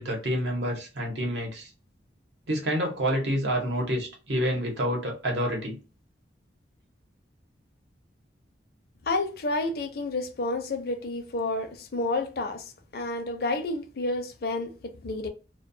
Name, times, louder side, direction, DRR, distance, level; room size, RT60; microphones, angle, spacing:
voice 1, 0.0-1.7 2.5-5.8, equal, 70° right, 0.9 m, -28 dB
voice 2, 9.0-15.3, left 2 dB, 55° left, 0.5 m, -30 dB
2.2 x 2.2 x 2.6 m
head